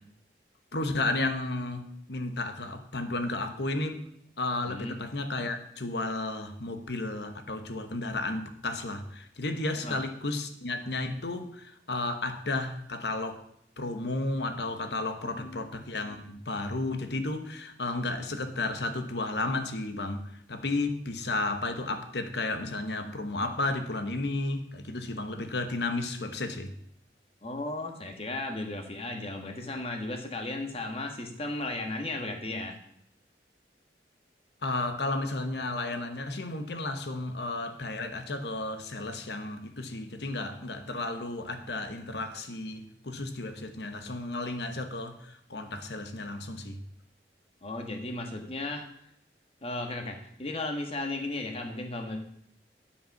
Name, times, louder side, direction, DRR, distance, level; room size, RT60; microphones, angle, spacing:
voice 1, 0.7-4.1 4.4-13.4 13.8-26.7 34.6-46.8, left 2 dB, 75° left, 1.1 m, -33 dB
voice 2, 4.7-5.0 9.8-10.0 15.3-15.8 27.4-32.8 47.6-48.8 49.6-52.2, left 2 dB, 35° left, 1.4 m, -35 dB
8.8 x 7.9 x 5.8 m
head